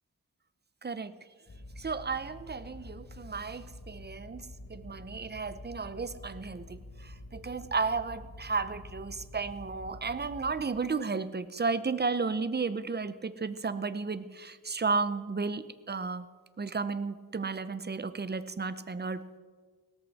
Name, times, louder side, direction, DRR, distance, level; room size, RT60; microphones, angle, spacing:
voice 1, 0.8-1.2 1.8-16.3 16.6-19.4, right 4 dB, 30° right, 14 dB, 0.7 m, -33 dB
sound 1, 1.5-10.6, left 1 dB, 60° left, 3.0 m, -48 dB
17.5 x 13.5 x 4.2 m, 1.5 s
wide cardioid pair, 80°, 35 cm